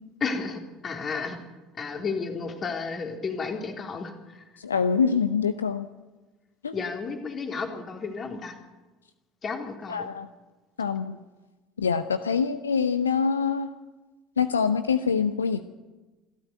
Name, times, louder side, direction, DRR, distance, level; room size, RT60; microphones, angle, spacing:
voice 1, 0.2-1.4 1.8-4.4 6.7-8.5 9.4-10.1, left 4 dB, 35° left, 4 dB, 3.6 m, -32 dB
voice 2, 4.6-5.9 6.6-6.7 9.9-10.3 10.8-11.2 11.8-13.7 14.4-15.7, left 6 dB, 80° left, 12 dB, 0.7 m, -25 dB
26.5 x 12.5 x 9.3 m, 1.2 s
figure-of-eight pair, 60°, 0 cm